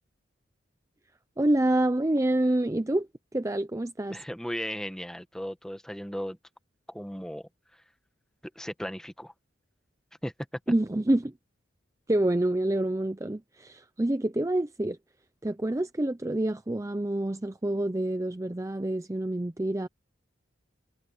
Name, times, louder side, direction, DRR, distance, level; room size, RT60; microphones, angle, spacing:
voice 1, 1.4-3.1 3.3-4.2 10.7-11.3 12.1-15.0 15.4-19.9, right 1 dB, 15° right, 0.5 m, -27 dB
voice 2, 4.1-6.4 6.9-7.5 8.5-9.3 10.2-10.3, equal, 5° left, 1.3 m, -36 dB
head